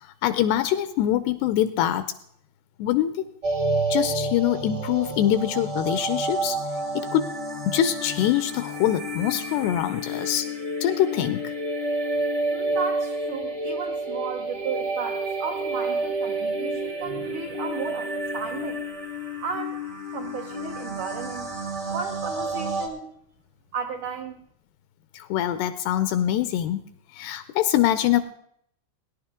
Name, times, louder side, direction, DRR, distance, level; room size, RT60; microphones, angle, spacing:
voice 1, 0.0-2.1 2.8-3.3 3.9-6.6 6.9-7.3 7.7-10.5 10.8-11.5 25.1-26.8 27.1-28.2, left 11 dB, 80° left, 12 dB, 2.5 m, -24 dB
sound 1, 3.4-22.9, right 2 dB, 40° right, 0.9 m, -29 dB
voice 2, 12.5-18.9 19.4-19.8 20.1-21.5 21.9-23.2 23.7-24.4, right 6 dB, 75° right, 1 dB, 1.8 m, -34 dB
20.5 x 11.0 x 3.6 m, 0.69 s
omnidirectional pair, 5.2 m